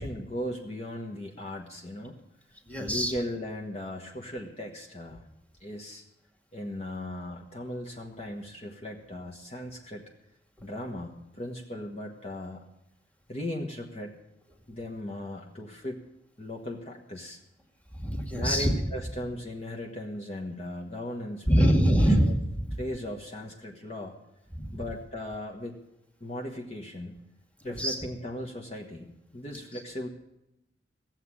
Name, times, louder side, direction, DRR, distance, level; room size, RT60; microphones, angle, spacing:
voice 1, 0.0-2.2 2.8-5.3 5.6-6.0 6.5-10.1 10.6-12.6 13.3-14.2 14.7-16.0 16.4-17.4 18.3-21.7 22.8-24.1 24.7-25.8 26.2-27.1 27.6-29.1 29.3-30.1, left 1 dB, 35° left, 0 dB, 1.3 m, -37 dB
voice 2, 2.6-3.1 10.6-10.7 17.9-18.7 21.5-22.8 24.5-24.8 27.6-28.0 29.5-29.6, equal, 10° left, 1 dB, 2.0 m, -24 dB
16.5 x 7.5 x 9.8 m, 0.86 s
head